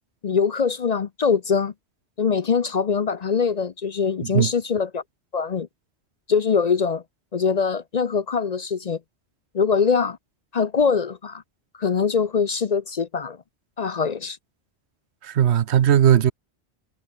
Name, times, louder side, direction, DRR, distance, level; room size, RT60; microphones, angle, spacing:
voice 1, 0.2-1.7 2.2-5.0 5.3-5.7 6.3-7.0 7.3-9.0 9.5-10.2 10.5-11.4 11.8-13.4 13.8-14.4, left 6 dB, 45° left, 0.6 m, -23 dB
voice 2, 15.2-16.3, right 10 dB, 80° right, 1.1 m, -18 dB
omnidirectional pair, 1.1 m